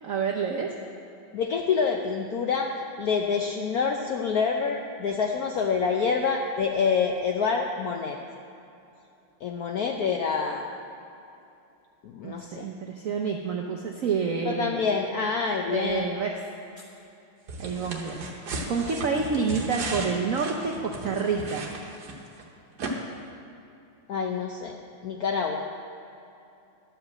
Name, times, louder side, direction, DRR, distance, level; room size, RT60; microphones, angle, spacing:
voice 1, 0.0-0.7 12.2-14.8 15.7-16.4 17.6-18.2 18.7-21.7, right 5 dB, 75° right, 1 dB, 0.7 m, -28 dB
voice 2, 1.3-2.7 3.0-8.2 9.4-10.7 12.0-12.7 14.4-16.0 24.1-24.7 25.0-25.6, left 5 dB, 75° left, 2 dB, 0.8 m, -27 dB
sound 1, 17.5-22.4 22.8-22.9, right 2 dB, 55° right, 1.5 m, -36 dB
11.5 x 5.1 x 7.4 m, 2.8 s
omnidirectional pair, 2.2 m